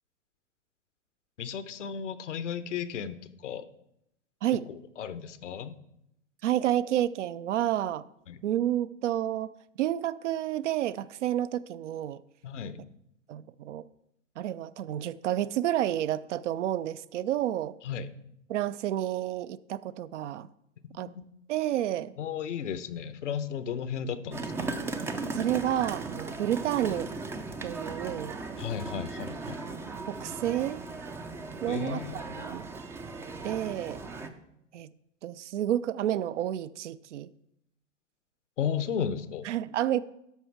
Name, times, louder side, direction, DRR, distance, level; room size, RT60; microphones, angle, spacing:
voice 1, 1.4-3.6 5.0-5.8 8.3-8.4 12.4-12.8 17.8-18.1 21.0-21.2 22.2-24.8 28.6-29.6 31.7-32.4 38.6-39.5, left 7 dB, 75° left, 0.9 m, -34 dB
voice 2, 6.4-8.0 8.4-9.5 9.8-12.2 13.3-13.9 14.4-17.7 18.5-20.5 21.0-21.1 21.5-22.1 25.3-27.1 27.6-28.4 30.1-30.8 31.6-32.6 33.4-34.0 34.7-34.9 35.2-37.3 39.4-40.0, right 12 dB, 70° right, 0.5 m, -30 dB
sound 1, 24.3-34.3, right 3 dB, 5° right, 0.3 m, -37 dB
12.5 x 5.6 x 4.6 m
hypercardioid pair, 105°, 37 cm